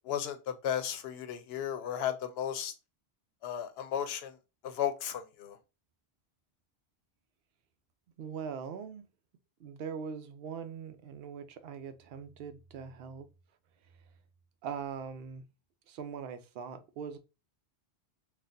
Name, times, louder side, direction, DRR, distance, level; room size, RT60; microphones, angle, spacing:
voice 1, 0.0-2.7 3.4-4.4 4.6-5.6, left 9 dB, 75° left, 0.8 m, -34 dB
voice 2, 8.2-9.1 9.6-13.3 14.6-15.4 15.9-17.2, right 7 dB, 70° right, 0.7 m, -41 dB
4.0 x 2.3 x 2.5 m
omnidirectional pair, 1.1 m